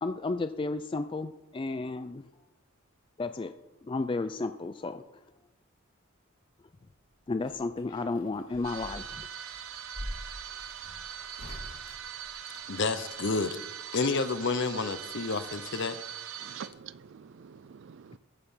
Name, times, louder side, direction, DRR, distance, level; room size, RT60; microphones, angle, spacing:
voice 1, 0.0-2.2 3.2-3.5 3.9-5.0 7.3-9.3, left 3 dB, 25° left, 0.3 m, -33 dB
sound 1, 7.0-12.9 14.3-15.2 15.5-15.6, equal, 75° left, 4.1 m, -46 dB
sound 2, 8.6-16.7, right 8 dB, 80° right, 1.0 m, -42 dB
voice 2, 12.7-13.6 13.9-16.0, left 4 dB, 60° left, 0.8 m, -29 dB
voice 3, 16.4-18.2, right 7 dB, 60° right, 0.4 m, -47 dB
14.5 x 6.7 x 5.6 m
head